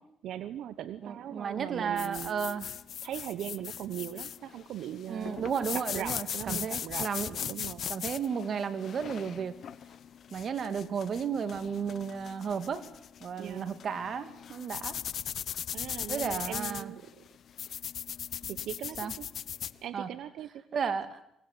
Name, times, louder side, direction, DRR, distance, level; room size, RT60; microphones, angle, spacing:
voice 1, 0.2-2.6 3.0-7.9 13.4-13.8 15.7-17.2 18.5-19.3 19.8-20.5, right 11 dB, 80° right, 12 dB, 1.1 m, -40 dB
voice 2, 1.0-2.7 5.1-7.3 7.9-9.6 10.3-12.8 13.2-15.0 16.1-16.9 19.0-19.1 19.9-20.1 20.7-21.2, right 6 dB, 55° right, 10 dB, 2.6 m, -33 dB
sound 1, 2.0-19.8, left 9 dB, 60° left, 0.9 m, -39 dB
24.0 x 18.5 x 9.8 m, 0.78 s
cardioid pair, 90°, 0 cm